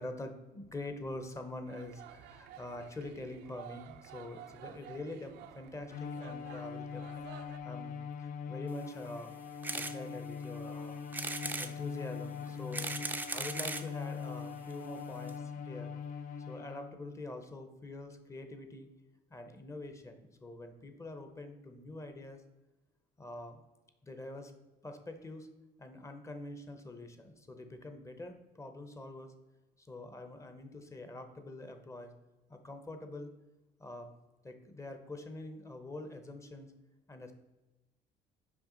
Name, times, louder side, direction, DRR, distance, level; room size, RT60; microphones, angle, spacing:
voice 1, 0.0-9.3 9.7-11.1 11.6-12.9 13.3-15.9 16.5-18.9 19.3-22.4 23.2-23.6 24.0-24.5 24.8-25.5 25.8-29.3 29.8-32.1 32.5-33.3 33.8-34.1 34.4-36.7 37.1-37.3, left 2 dB, 15° left, 7 dB, 0.8 m, -45 dB
sound 1, 1.7-7.6, right 10 dB, 85° right, 0.6 m, -52 dB
Bowed string instrument, 5.9-17.1, left 6 dB, 55° left, 0.5 m, -42 dB
sound 2, 9.6-10.0 10.4-10.5 11.1-11.7 12.5-13.9 14.7-14.8 15.0-15.1 15.3-15.4, right 3 dB, 10° right, 0.5 m, -37 dB
5.9 x 4.9 x 3.8 m, 1.1 s
cardioid pair, 110°, 17 cm